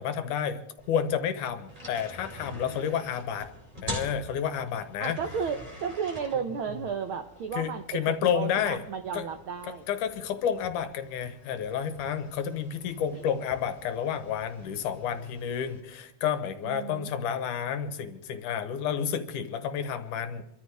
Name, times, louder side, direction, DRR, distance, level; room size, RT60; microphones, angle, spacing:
voice 1, 0.0-3.5 3.8-5.2 7.5-8.8 9.1-9.2 9.9-20.4, left 8 dB, 85° left, 9 dB, 2.7 m, -30 dB
sound 1, 0.8-15.8, equal, 15° right, 3.0 m, -46 dB
voice 2, 5.0-9.8 13.1-13.2 16.6-17.1, right 6 dB, 85° right, 7 dB, 1.1 m, -33 dB
27.0 x 13.5 x 3.5 m, 0.89 s
omnidirectional pair, 3.6 m